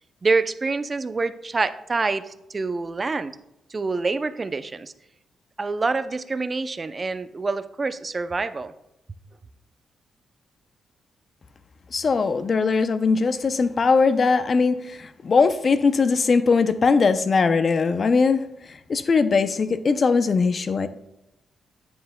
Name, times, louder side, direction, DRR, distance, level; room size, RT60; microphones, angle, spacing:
voice 1, 0.2-3.4 3.7-4.9 5.6-8.7, right 3 dB, 35° right, 0.5 m, -26 dB
voice 2, 11.9-18.4 18.9-20.9, left 4 dB, 50° left, 0.5 m, -20 dB
9.4 x 7.6 x 2.2 m
cardioid pair, 70°, 0 cm